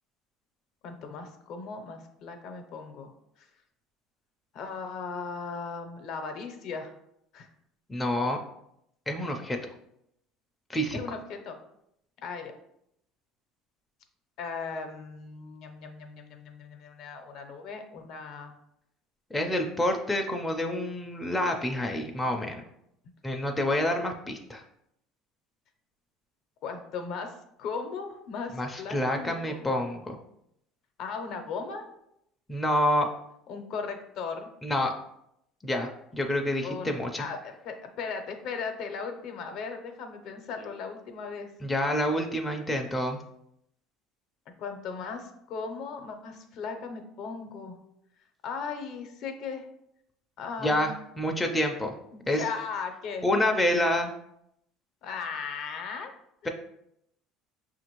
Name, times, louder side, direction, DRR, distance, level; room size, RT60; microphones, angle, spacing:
voice 1, 0.8-3.5 4.5-6.9 7.3-7.5 10.9-11.6 12.2-12.5 14.4-18.5 26.6-29.7 31.0-31.9 33.5-34.5 36.6-41.5 44.6-47.8 48.4-49.7 50.4-51.0 52.1-53.3 55.0-56.1, left 5 dB, 60° left, 5 dB, 0.6 m, -37 dB
voice 2, 7.9-8.4 9.1-9.6 10.7-11.0 19.3-22.6 23.2-24.6 28.6-30.2 32.5-33.1 34.6-34.9 35.6-37.3 41.6-43.2 50.6-51.9 52.3-52.4 53.2-54.1, left 1 dB, 10° left, 2 dB, 0.4 m, -28 dB
5.8 x 2.5 x 3.0 m, 0.77 s
cardioid pair, 130°, 0 cm